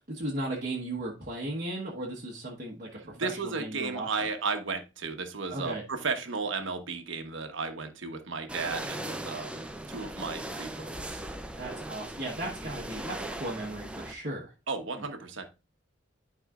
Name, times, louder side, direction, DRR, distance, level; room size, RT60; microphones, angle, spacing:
voice 1, 0.1-4.3 5.5-5.8 11.5-14.5, right 1 dB, 45° right, -5 dB, 1.2 m, -36 dB
voice 2, 3.0-11.2 14.7-15.5, right 4 dB, 75° right, 6 dB, 1.1 m, -34 dB
sound 1, 8.5-14.1, right 1 dB, 5° right, 0.5 m, -39 dB
11.5 x 4.8 x 2.4 m, 0.28 s
head